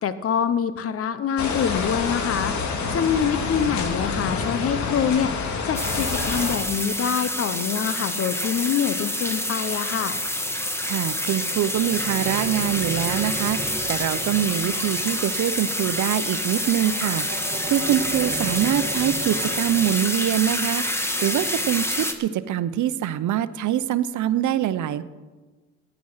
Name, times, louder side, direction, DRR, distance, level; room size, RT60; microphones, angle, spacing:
voice 1, 0.0-2.6 2.9-5.3 5.6-10.2, left 8 dB, 50° left, 13 dB, 0.9 m, -25 dB
sound 1, 1.4-6.6, left 4 dB, 70° left, 2.1 m, -27 dB
sound 2, 5.7-22.1, left 1 dB, 10° left, 1.5 m, -27 dB
voice 2, 10.8-25.0, right 11 dB, 75° right, 14 dB, 0.8 m, -24 dB
sound 3, 11.2-20.0, right 3 dB, 25° right, 1.4 m, -37 dB
15.5 x 11.0 x 5.7 m, 1.3 s
cardioid pair, 90°, 30 cm